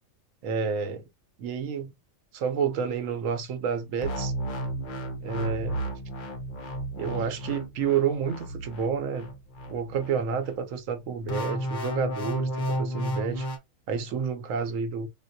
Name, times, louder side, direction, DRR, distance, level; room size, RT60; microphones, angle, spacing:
voice 1, 0.4-1.1 1.4-1.9 2.3-4.3 5.2-5.9 7.0-9.3 9.7-13.5 13.9-15.1, right 6 dB, 75° right, 1.0 m, -29 dB
sound 1, 4.0-10.5 11.3-13.6, right 1 dB, 55° left, 0.6 m, -33 dB
3.8 x 2.3 x 2.6 m
omnidirectional pair, 1.4 m